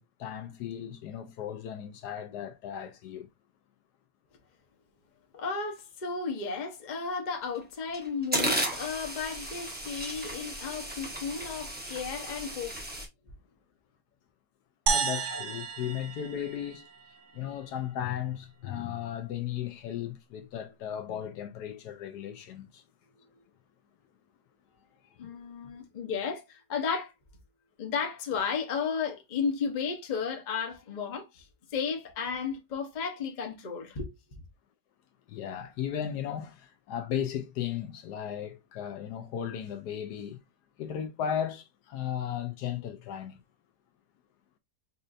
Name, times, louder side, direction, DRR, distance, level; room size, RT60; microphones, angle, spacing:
voice 1, 0.0-3.3 14.9-16.9 17.3-22.8 35.3-40.4 40.8-43.4, left 9 dB, 75° left, 1.1 m, -36 dB
voice 2, 5.3-12.8 15.3-15.4 23.2-23.4 25.2-27.1 27.8-31.5 31.7-34.1, left 5 dB, 40° left, 0.6 m, -34 dB
sound 1, 7.4-7.6 7.9-13.1, right 1 dB, 10° right, 0.5 m, -34 dB
sound 2, 14.9-17.3, right 5 dB, 75° right, 0.7 m, -32 dB
5.3 x 2.5 x 2.5 m
omnidirectional pair, 1.9 m